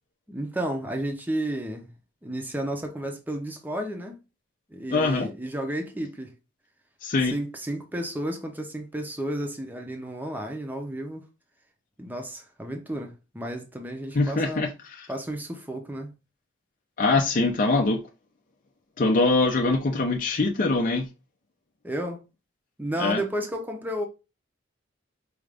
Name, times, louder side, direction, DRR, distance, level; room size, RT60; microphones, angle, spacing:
voice 1, 0.3-1.9 2.2-4.2 4.7-6.3 7.3-11.2 12.0-14.7 15.1-16.1 21.8-22.2 22.8-24.1, right 1 dB, 10° right, 0.7 m, -32 dB
voice 2, 4.9-5.3 7.0-7.3 14.1-15.1 17.0-18.0 19.0-21.1 23.0-23.2, left 3 dB, 45° left, 0.6 m, -23 dB
4.9 x 2.5 x 3.3 m
head